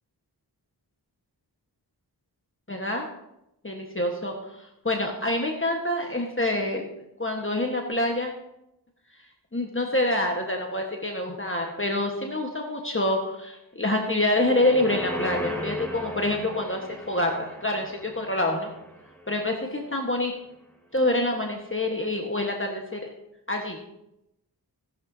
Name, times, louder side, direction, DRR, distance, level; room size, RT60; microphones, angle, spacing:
voice 1, 2.7-3.1 3.6-4.3 4.8-6.8 7.2-8.3 9.5-18.7 19.3-20.3 20.9-23.1 23.5-23.8, left 1 dB, 30° left, 1 dB, 1.3 m, -26 dB
sound 1, 14.2-19.6 20.0-20.1, left 1 dB, 5° left, 2.5 m, -36 dB
15.5 x 11.0 x 2.7 m, 0.86 s
wide cardioid pair, 40°, 42 cm